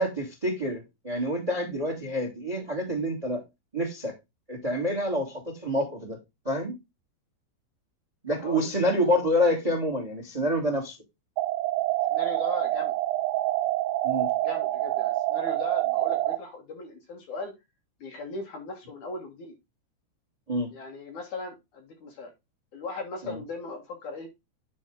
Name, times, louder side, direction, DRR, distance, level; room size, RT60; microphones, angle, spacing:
voice 1, 0.0-3.4 3.7-4.1 4.5-6.2 6.4-6.7 8.2-10.9 14.0-14.3 20.5-20.7 23.2-23.4, equal, 20° right, 3 dB, 0.8 m, -27 dB
voice 2, 8.4-8.7 9.0-9.1 12.1-12.9 14.4-17.5 18.0-19.5 20.7-22.3 22.7-24.3, left 3 dB, 55° left, 2 dB, 2.5 m, -38 dB
sound 1, 11.4-16.4, right 16 dB, 90° right, 2.1 m, -26 dB
9.8 x 4.7 x 3.8 m, 0.22 s
omnidirectional pair, 5.0 m